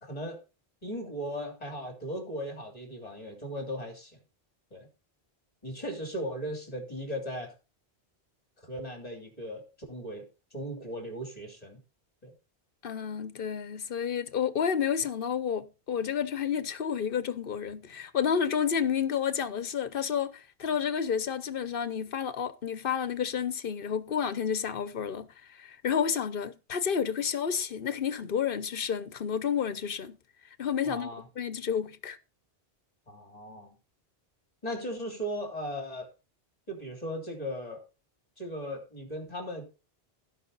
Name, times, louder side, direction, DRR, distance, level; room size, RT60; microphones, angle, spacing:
voice 1, 0.0-0.4 0.8-4.2 4.7-4.9 5.6-7.5 8.6-11.8 12.2-12.3 30.8-31.2 33.1-33.8 34.6-36.1 36.7-37.8 38.4-39.6, equal, 40° left, 3.2 m, -37 dB
voice 2, 12.8-30.2 30.6-31.1 31.4-32.2, left 7 dB, 65° left, 1.0 m, -30 dB
16.5 x 5.5 x 4.0 m
omnidirectional pair, 1.0 m